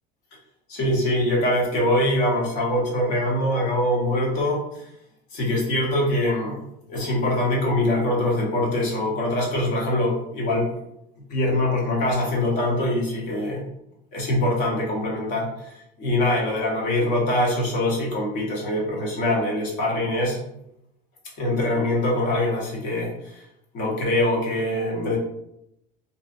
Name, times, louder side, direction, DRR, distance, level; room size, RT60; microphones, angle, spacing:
voice 1, 0.7-4.6 5.3-6.6 6.9-10.7 11.3-13.6 14.1-20.4 21.4-23.1 23.7-25.2, left 1 dB, 40° left, -2 dB, 0.7 m, -23 dB
2.5 x 2.0 x 2.4 m, 0.78 s
cardioid pair, 175°, 20 cm